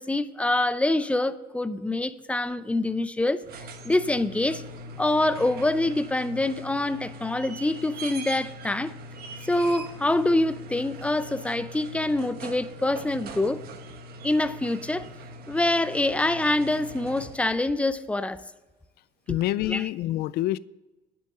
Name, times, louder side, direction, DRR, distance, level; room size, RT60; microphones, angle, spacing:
voice 1, 0.0-3.4 3.8-4.6 5.0-8.9 9.4-13.6 14.2-15.1 15.5-18.4 19.7-19.9, left 2 dB, 5° left, 0.5 m, -25 dB
sound 1, 3.3-17.7 19.4-19.5, right 1 dB, 65° right, 1.2 m, -41 dB
voice 2, 19.3-20.6, left 15 dB, 70° left, 0.4 m, -26 dB
9.9 x 6.2 x 7.6 m
cardioid pair, 110°, 17 cm